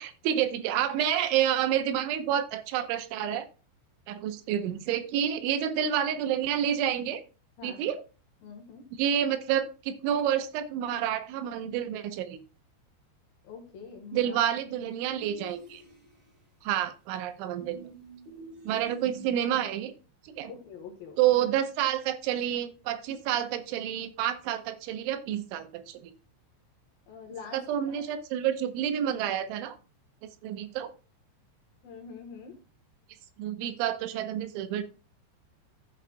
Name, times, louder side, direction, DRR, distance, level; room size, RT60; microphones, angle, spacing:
voice 1, 0.0-3.5 4.1-7.2 7.6-8.0 9.0-12.4 14.1-15.8 16.6-17.9 18.7-19.9 20.3-20.5 21.2-26.1 27.5-29.8 30.4-30.9 33.4-34.8, right 10 dB, 85° right, 10 dB, 3.3 m, -29 dB
voice 2, 7.6-7.9 8.4-8.9 13.4-14.4 14.7-14.9 18.7-18.8 20.5-21.2 27.1-28.0 31.8-32.6, left 5 dB, 65° left, 2 dB, 2.8 m, -45 dB
sound 1, 15.1-16.4 17.6-19.8, right 4 dB, 55° right, 4.6 m, -46 dB
14.5 x 6.7 x 2.2 m, 0.34 s
omnidirectional pair, 5.4 m